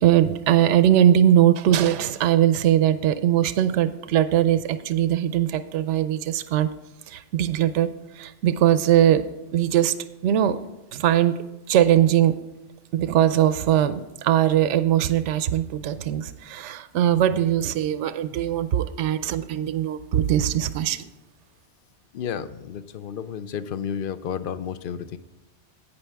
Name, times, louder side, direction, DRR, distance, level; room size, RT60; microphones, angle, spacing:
voice 1, 0.0-6.7 7.1-7.9 8.2-9.2 9.5-9.9 10.2-10.6 10.9-11.4 11.7-12.3 12.9-21.1, right 11 dB, 80° right, 12 dB, 0.9 m, -20 dB
voice 2, 22.1-25.2, left 8 dB, 55° left, 13 dB, 0.7 m, -32 dB
17.0 x 5.6 x 3.4 m, 1.0 s
omnidirectional pair, 1.2 m